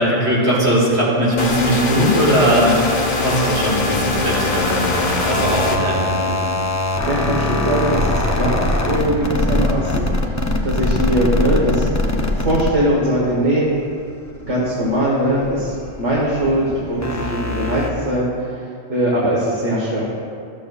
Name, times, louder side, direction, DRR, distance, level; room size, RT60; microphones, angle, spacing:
voice 1, 0.0-6.4, equal, 65° right, -6 dB, 1.8 m, -19 dB
sound 1, 1.4-5.8, left 3 dB, 45° left, 0.8 m, -21 dB
sound 2, 3.1-13.7 14.0-17.9, left 2 dB, 25° left, 0.3 m, -23 dB
voice 2, 7.1-10.1 10.6-11.9 12.3-13.7 14.4-18.6 18.9-20.1, right 1 dB, 85° right, -5 dB, 1.6 m, -20 dB
13.5 x 7.3 x 2.4 m, 2.3 s
omnidirectional pair, 1.2 m